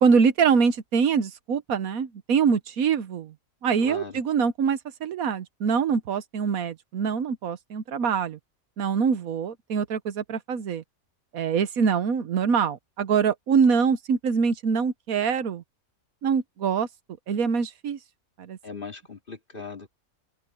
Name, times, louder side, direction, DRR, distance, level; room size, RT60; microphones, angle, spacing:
voice 1, 0.0-3.3 3.6-8.4 8.8-10.8 11.3-15.6 16.2-16.9 17.3-18.0 18.4-18.6, right 6 dB, 80° right, 1.4 m, -24 dB
voice 2, 3.8-4.2 18.6-19.9, left 4 dB, 40° left, 2.7 m, -39 dB
open air
omnidirectional pair, 1.5 m